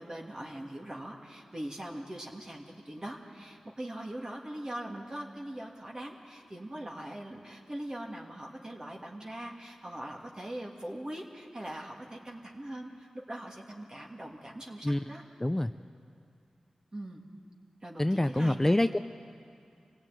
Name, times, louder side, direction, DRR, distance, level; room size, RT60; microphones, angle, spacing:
voice 1, 0.0-15.2 16.9-17.2 17.8-18.7, right 1 dB, 35° right, 0 dB, 2.6 m, -41 dB
voice 2, 15.4-15.7 18.0-19.0, left 1 dB, 20° left, 10 dB, 0.5 m, -26 dB
25.0 x 17.0 x 9.1 m, 2.4 s
cardioid pair, 50°, 2 cm